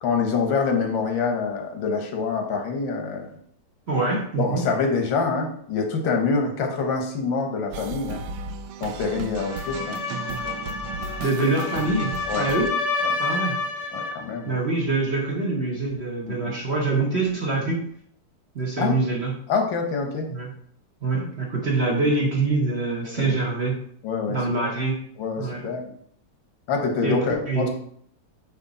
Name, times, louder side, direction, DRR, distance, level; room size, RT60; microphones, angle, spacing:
voice 1, 0.0-3.4 4.4-8.2 8.8-10.0 12.3-12.5 13.0-13.1 13.9-14.6 16.3-16.6 18.8-19.0 19.5-20.3 23.2-23.4 24.0-24.4 24.6-24.8 25.2-25.9 26.7-27.7, left 4 dB, 85° left, 4 dB, 1.8 m, -26 dB
voice 2, 3.9-4.6 11.2-12.7 13.2-13.6 14.4-17.8 18.5-19.3 20.3-20.5 21.0-23.8 24.3-25.0 25.4-25.6 27.0-27.7, right 3 dB, 40° right, -2 dB, 1.3 m, -25 dB
sound 1, 7.7-12.7, right 5 dB, 90° right, 1.4 m, -35 dB
sound 2, 9.4-14.3, left 4 dB, 60° left, 1.2 m, -29 dB
9.0 x 3.1 x 4.1 m, 0.64 s
omnidirectional pair, 2.0 m